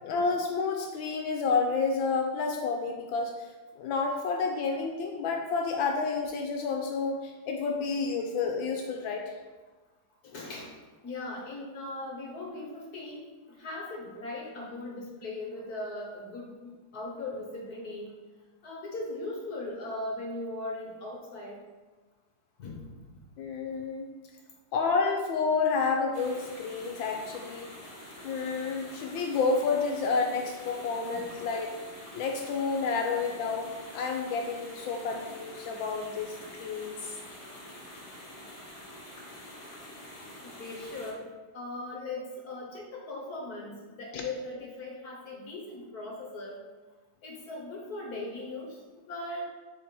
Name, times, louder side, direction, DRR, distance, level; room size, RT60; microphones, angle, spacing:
voice 1, 0.0-3.5 3.8-9.3 23.4-24.1 24.7-27.7 28.2-31.7 32.1-37.1 44.1-44.2, left 4 dB, 75° left, 2 dB, 1.3 m, -30 dB
voice 2, 10.2-10.7 11.0-18.1 18.6-21.6 22.6-22.9 31.1-31.3 40.4-41.2 41.5-46.6 47.2-48.8 49.1-49.4, left 2 dB, 55° left, -2 dB, 1.4 m, -39 dB
sound 1, 26.1-41.1, left 1 dB, 25° left, 0.9 m, -46 dB
4.4 x 4.4 x 5.2 m, 1.3 s
omnidirectional pair, 2.2 m